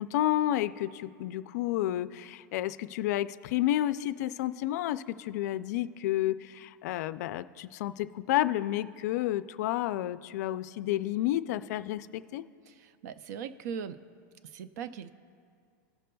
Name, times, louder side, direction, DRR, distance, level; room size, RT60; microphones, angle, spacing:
voice 1, 0.0-12.5, left 13 dB, 60° left, 13 dB, 0.4 m, -30 dB
voice 2, 12.7-14.0 14.4-15.1, right 7 dB, 65° right, 13 dB, 0.5 m, -40 dB
17.5 x 6.5 x 2.3 m, 2.3 s
supercardioid pair, 155°, 10 cm